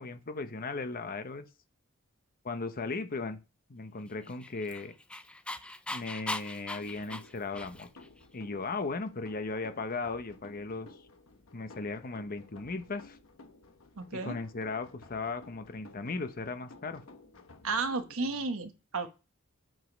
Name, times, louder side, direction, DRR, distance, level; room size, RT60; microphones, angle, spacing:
voice 1, 0.0-1.4 2.4-3.4 3.7-4.9 5.9-7.9 8.3-10.9 11.5-13.2 14.1-17.0 18.2-18.3, left 3 dB, 45° left, 0.8 m, -37 dB
Dog, 4.2-8.1, left 1 dB, 5° left, 0.4 m, -40 dB
sound 1, 6.8-18.1, left 2 dB, 70° left, 1.1 m, -55 dB
voice 2, 14.0-14.4 17.6-19.1, right 4 dB, 70° right, 1.0 m, -33 dB
7.6 x 5.0 x 5.2 m
head